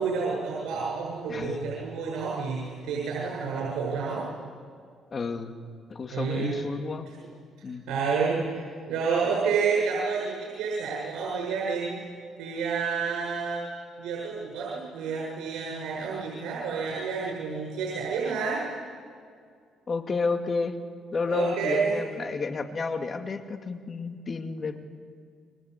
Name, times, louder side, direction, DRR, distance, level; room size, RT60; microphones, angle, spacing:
voice 1, 0.0-4.3 6.1-6.6 7.9-12.0 12.4-13.7 14.0-18.6 21.3-22.0, right 5 dB, 85° right, -4 dB, 7.2 m, -29 dB
voice 2, 1.3-1.7 5.1-5.5 5.9-7.1 7.6-7.9 19.9-20.8 21.1-24.8, left 4 dB, 40° left, 7 dB, 2.3 m, -31 dB
29.0 x 23.5 x 8.3 m, 2.2 s
cardioid pair, 95°, 0 cm